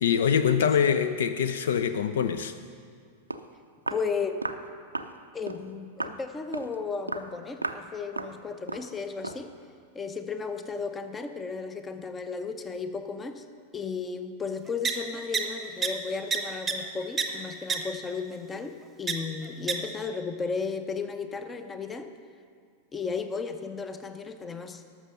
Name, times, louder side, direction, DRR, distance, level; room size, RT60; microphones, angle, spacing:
voice 1, 0.0-2.6, left 7 dB, 60° left, 11 dB, 0.4 m, -24 dB
Walk footsteps, 3.0-3.1 3.3-3.5 3.9-4.1 4.4-4.6 5.0-5.2 5.5-5.7 6.0-6.2 6.5-6.8 7.1-7.3 7.6-7.9 8.2-8.4 8.7-8.9 9.2-9.5, right 2 dB, 85° right, 0.4 m, -34 dB
voice 2, 3.9-4.3 5.3-9.5 9.9-13.4 13.7-22.1 22.9-24.8, left 5 dB, 20° left, 9 dB, 0.7 m, -34 dB
sound 1, 14.8-14.9 15.3-15.4 15.8-15.9 16.3-16.4 16.7-16.8 17.2-17.3 17.7-17.8 19.1-19.2 19.7-19.8, right 6 dB, 15° right, 0.9 m, -25 dB
12.5 x 6.1 x 6.6 m, 2.2 s
figure-of-eight pair, 90°, 0 cm